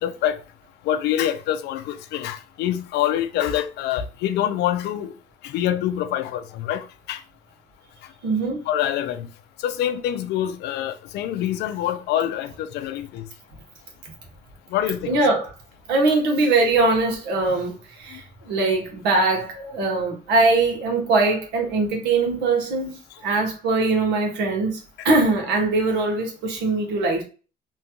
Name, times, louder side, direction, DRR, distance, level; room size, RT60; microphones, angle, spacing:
voice 1, 0.0-0.4 0.9-5.1 5.4-7.2 8.7-9.3 9.6-13.2 14.7-15.2 18.1-18.2 25.0-25.1, left 11 dB, 80° left, 0.4 m, -25 dB
voice 2, 8.2-8.6 15.0-15.5 15.9-27.2, right 3 dB, 80° right, 1.1 m, -22 dB
2.9 x 2.3 x 2.9 m
cardioid pair, 110°, 17 cm